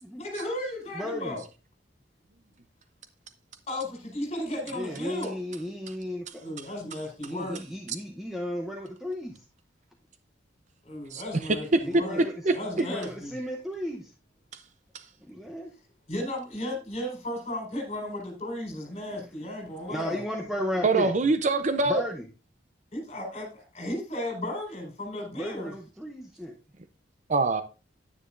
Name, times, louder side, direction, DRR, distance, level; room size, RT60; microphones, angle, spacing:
voice 1, 0.1-1.4 3.7-5.3 6.4-7.6 10.8-12.2 12.5-13.4 16.1-20.2 22.9-25.7, left 1 dB, 35° left, 4.4 m, -34 dB
voice 2, 0.9-1.4 4.7-6.4 7.2-9.4 11.8-12.3 12.8-14.1 15.2-15.7 19.1-19.2 19.8-21.1 21.9-22.3 25.3-26.6, left 1 dB, ahead, 0.8 m, -34 dB
voice 3, 20.8-22.0 27.3-27.6, right 3 dB, 40° right, 0.6 m, -23 dB
9.8 x 9.8 x 2.5 m
head